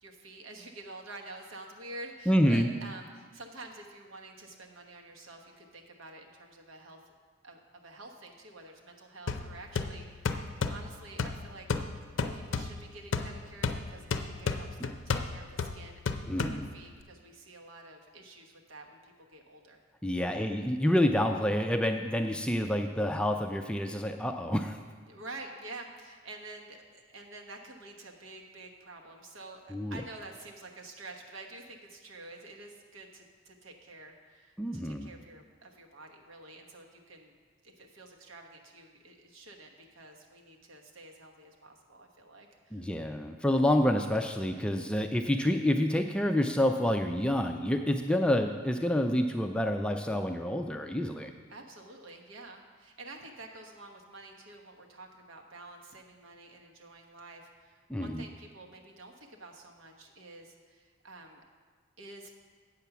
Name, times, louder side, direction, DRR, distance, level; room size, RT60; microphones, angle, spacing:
voice 1, 0.0-7.0 7.4-10.3 10.7-11.7 12.3-16.0 16.4-19.8 20.4-20.5 25.1-37.3 37.6-42.9 48.1-48.4 51.5-61.4 62.0-62.3, right 2 dB, 80° right, 2 dB, 1.1 m, -49 dB
voice 2, 2.3-2.7 16.3-16.7 20.0-24.8 29.7-30.0 34.6-35.1 42.7-51.3 57.9-58.2, left 1 dB, 5° left, 4 dB, 0.3 m, -28 dB
sound 1, 9.3-17.0, left 4 dB, 75° left, 0.5 m, -34 dB
8.3 x 6.8 x 5.9 m, 1.5 s
head